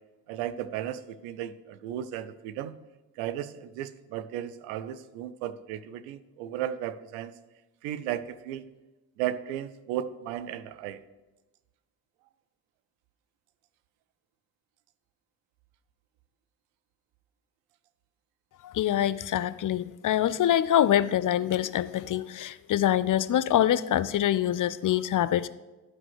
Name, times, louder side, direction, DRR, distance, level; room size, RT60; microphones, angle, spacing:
voice 1, 0.3-2.7 3.2-7.3 7.8-8.6 9.2-11.0, right 11 dB, 85° right, 14 dB, 0.7 m, -35 dB
voice 2, 18.6-25.5, left 11 dB, 45° left, 15 dB, 0.5 m, -25 dB
11.0 x 4.9 x 6.2 m, 1.1 s
hypercardioid pair, 55°, 48 cm